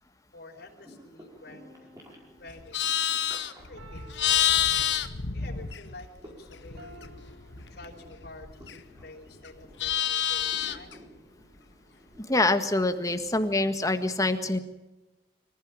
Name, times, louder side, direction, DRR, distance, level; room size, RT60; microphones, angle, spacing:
voice 1, 0.3-1.9 2.4-4.6 5.0-7.1 7.4-11.0, left 2 dB, 65° left, 0 dB, 4.8 m, -49 dB
sound 1, 0.6-13.3, equal, 20° right, 5.0 m, -54 dB
sound 2, 1.4-2.8 3.8-5.4 6.8-8.5 9.1-9.3, right 1 dB, 70° right, 5.6 m, -53 dB
Livestock farm animals working animals, 2.5-6.2 6.5-9.0 9.4-10.9, left 10 dB, 80° left, 1.2 m, -28 dB
voice 2, 12.2-14.6, left 2 dB, 20° left, 8 dB, 1.6 m, -25 dB
25.5 x 15.0 x 7.4 m, 1.1 s
head